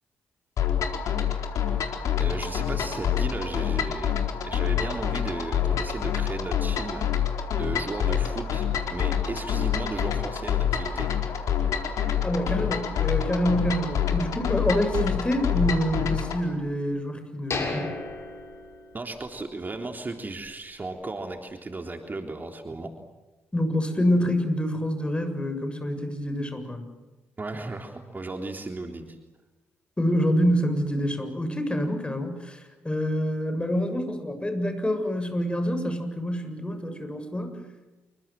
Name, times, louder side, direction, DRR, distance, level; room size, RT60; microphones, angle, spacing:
sound 1, 0.6-16.4, left 8 dB, 60° left, 4.3 m, -27 dB
voice 1, 2.2-7.1 7.6-11.1 18.9-22.9 27.4-29.2, right 2 dB, 30° right, 4 dB, 3.5 m, -35 dB
voice 2, 12.2-17.9 23.5-26.9 30.0-37.6, equal, 15° left, 8 dB, 7.3 m, -26 dB
sound 2, 17.5-19.4 19.8-19.9 20.4-20.6, left 3 dB, 45° left, 7.4 m, -34 dB
28.5 x 24.5 x 7.6 m, 1.1 s
hypercardioid pair, 45°, 6 cm